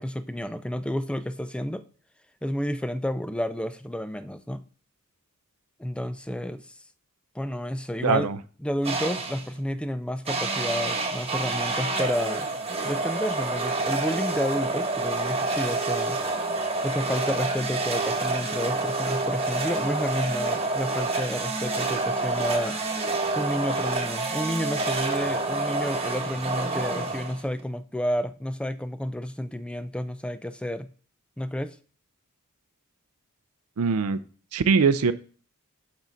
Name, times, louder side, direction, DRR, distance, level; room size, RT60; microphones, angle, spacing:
voice 1, 0.0-1.8 2.4-4.6 5.8-6.8 7.3-8.3 8.6-12.5 12.8-16.2 16.8-22.8 23.4-30.9 31.4-31.8, equal, 5° left, 0.4 m, -30 dB
voice 2, 8.0-8.4 33.8-34.2 34.5-35.1, right 5 dB, 75° right, 0.5 m, -21 dB
sound 1, 8.8-9.5 10.3-27.6, right 3 dB, 25° right, 1.2 m, -28 dB
7.2 x 5.6 x 3.9 m
head